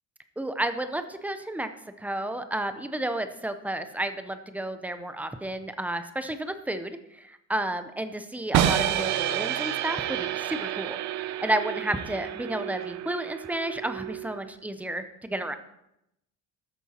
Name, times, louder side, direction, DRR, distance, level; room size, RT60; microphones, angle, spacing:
voice 1, 0.4-1.7 2.0-11.0 11.4-15.5, right 1 dB, 5° right, 9 dB, 0.4 m, -31 dB
sound 1, 8.5-14.5, right 11 dB, 55° right, 0.7 m, -29 dB
13.0 x 8.6 x 4.2 m, 0.84 s
cardioid pair, 180°, 32 cm